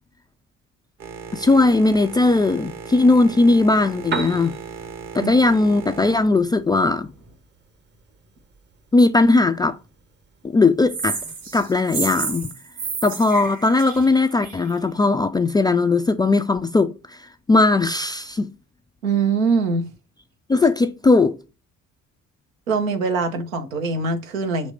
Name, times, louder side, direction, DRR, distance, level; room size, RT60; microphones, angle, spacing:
Boat Water vehicle, 1.0-7.4, right 5 dB, 40° right, 1.2 m, -38 dB
voice 1, 1.3-4.5 5.1-7.1 8.9-9.8 10.4-11.2 11.5-12.5 13.0-18.5 20.5-21.4, left 3 dB, 10° left, 0.3 m, -18 dB
Piano, 3.9-11.9, right 5 dB, 25° right, 0.9 m, -39 dB
sound 1, 10.9-14.7, right 4 dB, 55° right, 2.3 m, -30 dB
voice 2, 19.0-19.9 22.7-24.7, right 4 dB, 75° right, 1.0 m, -22 dB
6.2 x 3.2 x 5.4 m
figure-of-eight pair, 45°, 40 cm